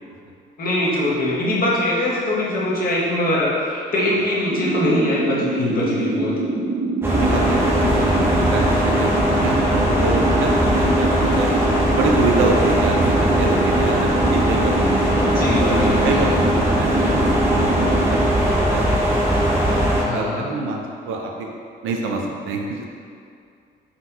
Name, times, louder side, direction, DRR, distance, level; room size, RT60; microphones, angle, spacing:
voice 1, 0.6-6.3 15.3-16.3 20.0-20.5, left 1 dB, 45° left, -6 dB, 0.9 m, -22 dB
sound 1, 4.5-18.2, right 2 dB, 60° right, 1.1 m, -25 dB
sound 2, 7.0-20.0, equal, 10° right, 0.6 m, -19 dB
voice 2, 7.2-9.1 9.4-11.5 11.9-14.0 14.3-15.1 15.6-17.7 18.1-18.3 18.7-21.5 21.8-22.8, right 3 dB, 85° right, 1 dB, 0.4 m, -26 dB
3.6 x 2.1 x 2.8 m, 2.4 s
cardioid pair, 90°, 20 cm